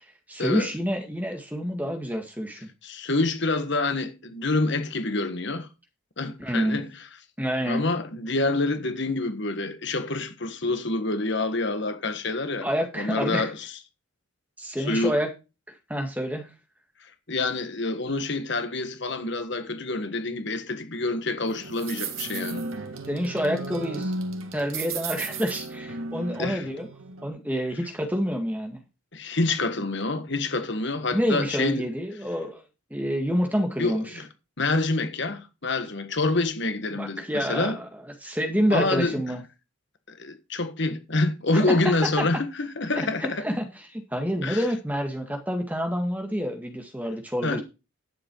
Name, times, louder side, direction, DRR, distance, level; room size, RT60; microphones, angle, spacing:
voice 1, 0.3-2.7 6.4-6.8 7.4-7.8 12.6-13.4 14.6-15.3 15.9-16.5 23.1-24.1 24.5-26.9 27.2-28.8 31.1-32.6 32.9-34.0 36.9-37.9 38.2-39.4 41.5-42.3 43.0-43.6 43.9-47.6, equal, 5° right, 1.9 m, -28 dB
voice 2, 2.8-5.7 6.2-6.9 7.7-12.7 12.9-13.7 14.8-15.1 17.0-22.6 26.4-26.7 29.1-31.9 33.8-34.3 34.6-37.8 38.7-39.2 40.1-43.4 44.4-44.6 47.4-47.6, left 2 dB, 55° left, 1.6 m, -27 dB
sound 1, 21.5-27.3, right 3 dB, 75° right, 1.9 m, -34 dB
11.0 x 7.9 x 4.7 m
head